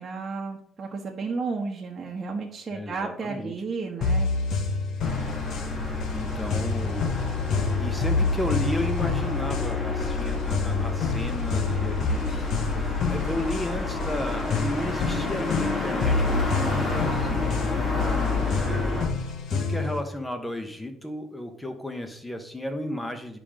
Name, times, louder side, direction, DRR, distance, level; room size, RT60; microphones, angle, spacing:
voice 1, 0.0-4.3, right 4 dB, 35° right, -1 dB, 1.2 m, -32 dB
voice 2, 2.7-3.5 5.8-7.1 7.8-12.5 12.8-19.2 19.5-23.4, left 1 dB, 10° left, 6 dB, 1.2 m, -34 dB
sound 1, 4.0-20.0, left 4 dB, 65° left, 1.1 m, -29 dB
sound 2, 5.0-19.1, left 4 dB, 30° left, 2.0 m, -29 dB
11.0 x 5.1 x 3.7 m, 0.69 s
cardioid pair, 105°, 0 cm